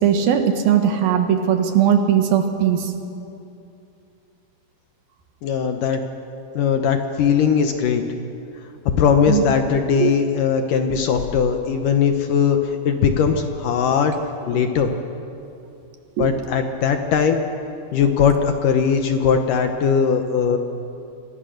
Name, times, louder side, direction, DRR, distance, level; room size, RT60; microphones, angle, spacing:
voice 1, 0.0-2.9 9.3-9.4 10.0-10.1 16.2-16.3, right 9 dB, 70° right, 5 dB, 3.1 m, -18 dB
voice 2, 5.4-6.0 6.5-8.0 9.0-14.1 14.5-14.9 16.2-17.4 17.9-20.6, left 6 dB, 70° left, 5 dB, 2.2 m, -19 dB
26.5 x 23.0 x 6.5 m, 2.7 s
omnidirectional pair, 4.6 m